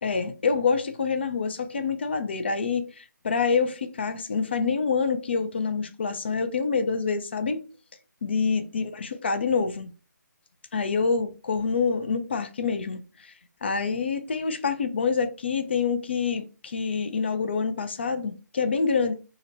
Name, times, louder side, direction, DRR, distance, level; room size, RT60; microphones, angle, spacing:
voice 1, 0.0-7.6 8.2-9.9 10.7-13.3 13.6-19.1, left 5 dB, 35° left, 0.3 m, -26 dB
2.8 x 2.1 x 3.9 m
figure-of-eight pair, 150°, 10 cm